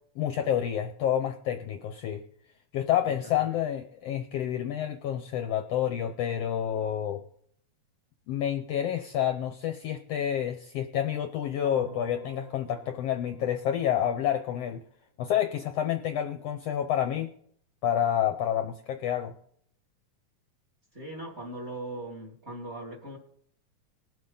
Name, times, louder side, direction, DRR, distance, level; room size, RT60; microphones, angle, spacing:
voice 1, 0.2-2.2 2.7-7.2 8.3-14.8 15.2-17.3 17.8-19.3, left 10 dB, 70° left, 6 dB, 1.6 m, -29 dB
voice 2, 3.0-3.6 20.9-23.2, right 1 dB, 25° right, -1 dB, 2.6 m, -40 dB
sound 1, 11.6-14.6, right 2 dB, 50° right, 0.7 m, -49 dB
21.0 x 7.7 x 3.9 m, 0.65 s
omnidirectional pair, 3.4 m